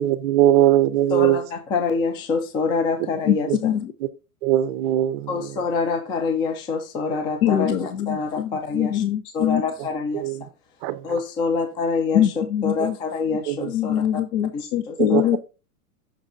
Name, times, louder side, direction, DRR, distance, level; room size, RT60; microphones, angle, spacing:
voice 1, 0.0-1.4 3.5-3.6 4.4-5.5 10.1-10.4 10.8-11.0 13.5-13.7 15.1-15.2, right 13 dB, 40° right, 0.6 m, -20 dB
voice 2, 1.1-3.7 5.3-9.0 9.3-10.2 11.0-12.3 12.6-14.2 14.5-15.3, left 4 dB, 10° left, 0.3 m, -26 dB
voice 3, 3.6-3.9 7.4-9.6 12.1-12.9 13.7-15.4, left 10 dB, 70° left, 0.9 m, -23 dB
6.0 x 4.0 x 4.8 m
hypercardioid pair, 125°, 45 cm